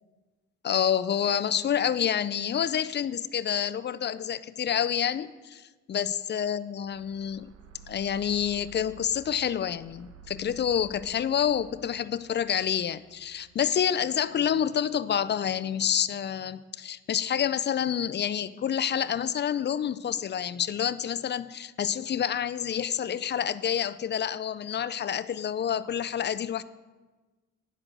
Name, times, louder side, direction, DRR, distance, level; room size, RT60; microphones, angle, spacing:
voice 1, 0.6-5.6 5.9-7.5 7.9-26.6, left 9 dB, 35° left, 15 dB, 0.4 m, -28 dB
sound 1, 6.8-15.1, right 1 dB, 55° right, 0.9 m, -52 dB
9.8 x 6.2 x 6.4 m, 1.3 s
cardioid pair, 90°, 30 cm